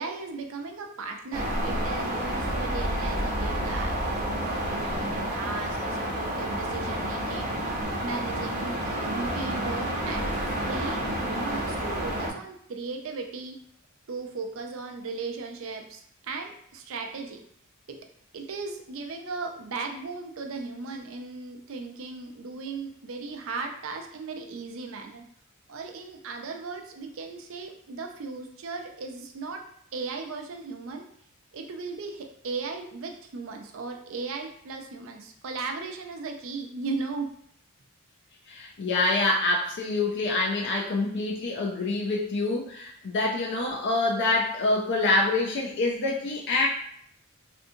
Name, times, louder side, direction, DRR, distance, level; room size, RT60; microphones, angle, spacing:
voice 1, 0.0-13.6 14.1-17.4 17.9-18.0 18.3-25.2 25.7-29.7 29.9-31.0 31.5-37.3, right 4 dB, 65° right, 4 dB, 0.5 m, -37 dB
sound 1, 1.3-12.3, right 1 dB, 40° right, 0.9 m, -29 dB
voice 2, 38.5-46.7, left 2 dB, 55° left, -1 dB, 0.4 m, -26 dB
3.4 x 2.6 x 2.7 m, 0.65 s
head